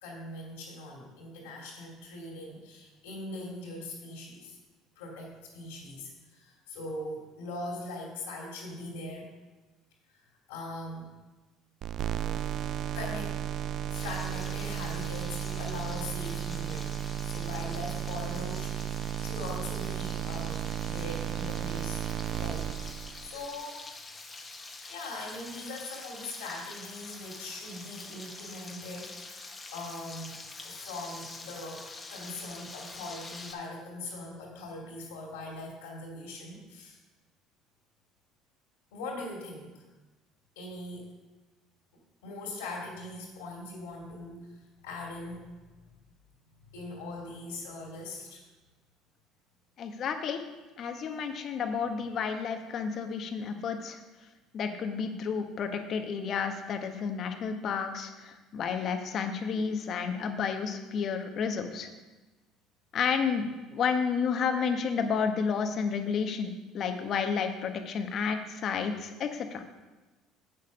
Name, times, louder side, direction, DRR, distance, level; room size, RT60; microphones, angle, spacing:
voice 1, 0.0-4.6 5.0-9.3 10.1-11.1 12.2-12.5 12.9-13.4 13.9-17.0 17.2-23.8 24.9-37.0 38.9-39.8 40.6-41.1 42.2-45.4 46.7-48.4 50.8-51.5, left 2 dB, 85° left, -1 dB, 2.4 m, -41 dB
sound 1, 11.8-23.5, right 10 dB, 55° right, 0.3 m, -34 dB
Frying (food), 13.9-33.5, left 3 dB, 25° left, 1.4 m, -46 dB
voice 2, 49.8-50.4 50.8-54.0 54.5-61.9 62.9-69.6, left 6 dB, 55° left, 6 dB, 1.1 m, -31 dB
8.0 x 6.8 x 5.3 m, 1.2 s
hypercardioid pair, 70°, 0 cm